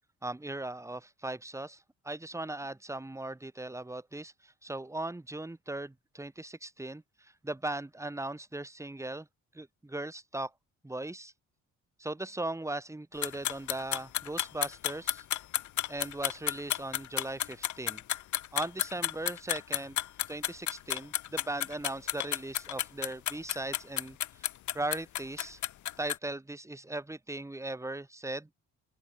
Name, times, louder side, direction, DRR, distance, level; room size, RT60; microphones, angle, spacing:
voice 1, 0.2-9.3 9.5-10.5 10.8-11.3 12.0-15.3 15.9-18.0 18.5-20.0 20.3-24.2 24.7-25.6 26.0-28.5, right 2 dB, 10° right, 1.9 m, -38 dB
sound 1, 13.2-26.2, left 13 dB, 70° left, 1.5 m, -32 dB
open air
cardioid pair, 90°, 30 cm